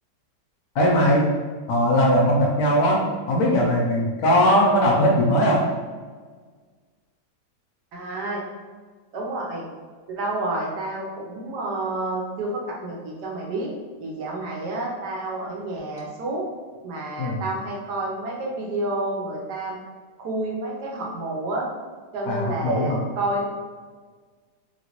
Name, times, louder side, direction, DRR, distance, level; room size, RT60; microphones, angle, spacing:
voice 1, 0.7-1.3 1.7-5.6 17.2-17.4 22.3-23.0, equal, 70° left, -2 dB, 1.0 m, -19 dB
voice 2, 7.9-8.4 9.1-9.7 10.1-13.7 14.0-16.4 16.8-19.8 20.2-21.7 22.1-23.5, right 2 dB, 75° right, -2 dB, 1.3 m, -29 dB
3.0 x 2.9 x 2.9 m, 1.5 s
omnidirectional pair, 1.9 m